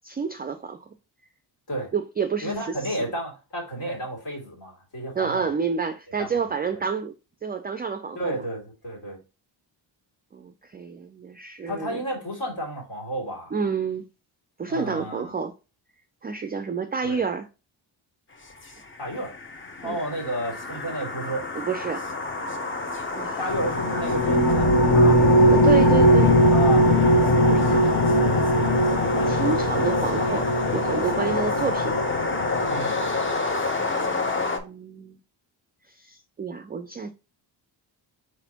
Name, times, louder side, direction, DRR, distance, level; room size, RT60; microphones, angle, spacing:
voice 1, 0.0-0.9 1.9-3.1 5.2-7.1 7.4-8.4 10.3-12.0 13.5-14.0 14.6-15.5 16.2-17.5 19.8-20.0 21.6-22.1 23.1-23.4 25.5-26.3 27.5-27.9 29.3-32.0 33.5-35.2 35.9-37.1, right 5 dB, 20° right, 0.3 m, -29 dB
voice 2, 2.4-5.5 6.2-6.3 8.2-9.2 11.7-13.6 14.7-15.3 17.0-17.2 19.0-19.4 19.8-21.5 23.4-25.2 26.5-27.1 28.5-28.7 32.7-33.0, right 1 dB, 65° left, 2.5 m, -32 dB
sound 1, 18.4-34.6, left 3 dB, 25° left, 0.7 m, -29 dB
sound 2, 23.5-33.2, equal, 50° left, 1.0 m, -20 dB
4.4 x 4.1 x 2.8 m
cardioid pair, 75°, 47 cm